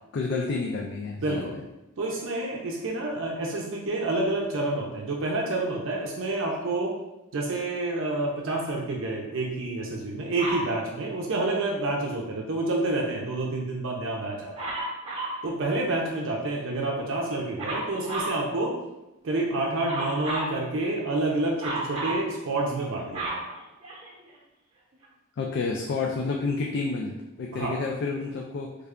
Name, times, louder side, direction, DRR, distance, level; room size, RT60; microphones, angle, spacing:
voice 1, 0.1-1.6 25.4-28.7, left 4 dB, 55° left, -1 dB, 0.3 m, -30 dB
voice 2, 1.2-1.6 2.0-6.9 7.3-14.7 15.4-18.7 19.2-23.3 27.5-27.8, right 2 dB, 60° right, -1 dB, 0.5 m, -28 dB
Dog, 10.4-10.7 14.6-15.4 17.6-18.4 19.8-20.6 21.6-22.2 22.8-24.3 25.0-25.1, right 2 dB, 30° right, 0.8 m, -32 dB
3.3 x 2.2 x 3.6 m, 0.96 s
head